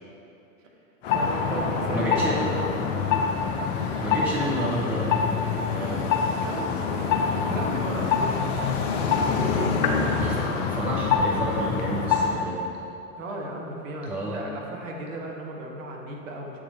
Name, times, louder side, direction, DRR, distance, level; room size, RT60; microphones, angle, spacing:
sound 1, 1.0-12.4, left 5 dB, 50° left, 0.7 m, -25 dB
voice 1, 1.1-2.7 5.9-6.1 6.4-6.7 7.5-8.4 13.2-16.6, right 2 dB, 65° right, 1 dB, 1.1 m, -35 dB
voice 2, 1.9-2.4 4.0-5.4 5.6-6.2 10.2-10.4 10.7-12.6 14.1-14.4, right 1 dB, 5° right, -4 dB, 0.3 m, -30 dB
7.5 x 3.8 x 4.0 m, 2.8 s
figure-of-eight pair, 90°, 42 cm